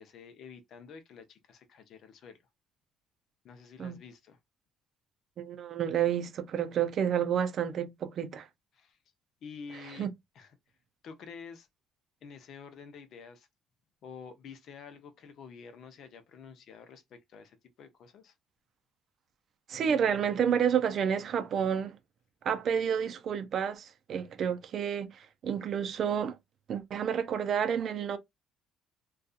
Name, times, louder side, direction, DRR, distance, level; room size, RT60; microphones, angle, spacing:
voice 1, 0.0-2.4 3.4-4.4 8.7-9.0 9.4-10.1 10.3-10.6 11.0-11.7 12.2-13.5 14.0-18.3, left 6 dB, 60° left, 0.7 m, -49 dB
voice 2, 5.4-8.5 10.0-10.1 19.7-21.9 22.4-26.4 26.7-28.2, right 8 dB, 55° right, 0.5 m, -30 dB
2.6 x 2.3 x 2.4 m
cardioid pair, 110°, 0 cm